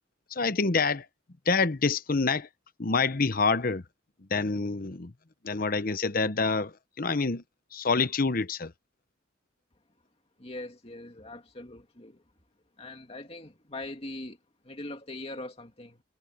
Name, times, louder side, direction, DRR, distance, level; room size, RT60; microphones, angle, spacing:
voice 1, 0.3-1.1 1.5-2.5 2.8-3.8 4.3-5.1 5.4-7.4 7.7-8.7, left 4 dB, 50° left, 0.9 m, -27 dB
voice 2, 10.4-12.2 12.8-14.4 14.6-16.0, left 2 dB, 30° left, 2.6 m, -41 dB
head